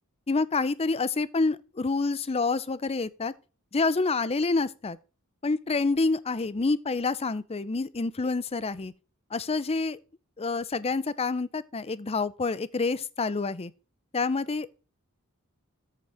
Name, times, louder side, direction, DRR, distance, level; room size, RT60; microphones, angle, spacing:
voice 1, 0.3-3.3 3.7-5.0 5.4-8.9 9.3-10.0 10.4-13.7 14.1-14.7, left 3 dB, 25° left, 0.5 m, -27 dB
13.5 x 4.7 x 4.8 m
head